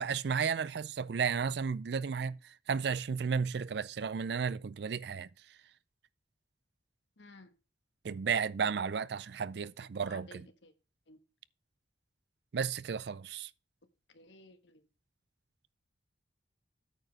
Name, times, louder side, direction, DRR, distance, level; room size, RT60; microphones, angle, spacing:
voice 1, 0.0-5.3 8.0-10.5 12.5-13.5, right 6 dB, 60° right, 0.4 m, -33 dB
voice 2, 7.2-7.5 10.1-10.7 11.1-11.2 14.1-14.8, left 2 dB, 75° left, 1.3 m, -55 dB
9.0 x 4.9 x 6.2 m
head